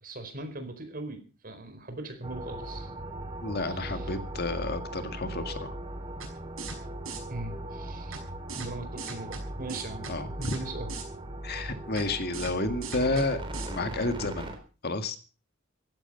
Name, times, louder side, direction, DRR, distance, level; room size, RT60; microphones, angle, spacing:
voice 1, 0.0-2.9 3.6-4.1 7.3-8.2 8.5-10.0 10.4-10.9 11.5-11.7, right 2 dB, 45° right, 7 dB, 4.6 m, -40 dB
sound 1, 2.2-14.6, right 1 dB, 25° right, 3.8 m, -39 dB
voice 2, 3.4-5.8 10.1-10.5 11.4-13.4 13.7-14.5 14.8-15.2, left 2 dB, 50° left, 9 dB, 2.0 m, -31 dB
sound 2, 6.2-6.3 6.6-6.8 7.1-7.2 8.1-8.2 8.5-8.7 9.0-9.4 9.7-10.1 10.4-10.6 10.9-11.0 12.0-12.1 12.3-12.5 12.8-13.2 13.5-13.7, right 5 dB, 80° right, 6.0 m, -38 dB
16.0 x 14.0 x 5.6 m, 0.37 s
head